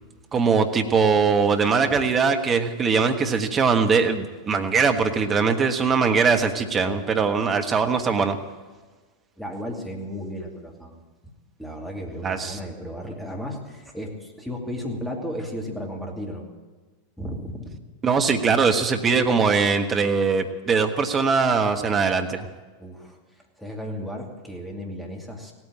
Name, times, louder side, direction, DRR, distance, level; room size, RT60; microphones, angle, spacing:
voice 1, 0.3-8.4 12.2-12.6 18.0-22.5, right 5 dB, 20° right, 6 dB, 1.4 m, -21 dB
voice 2, 9.4-11.0 11.6-16.5 17.2-17.7 22.8-23.2 23.6-25.5, equal, 5° left, 0 dB, 2.6 m, -34 dB
17.0 x 9.3 x 8.8 m, 1.3 s
figure-of-eight pair, 90°, 0 cm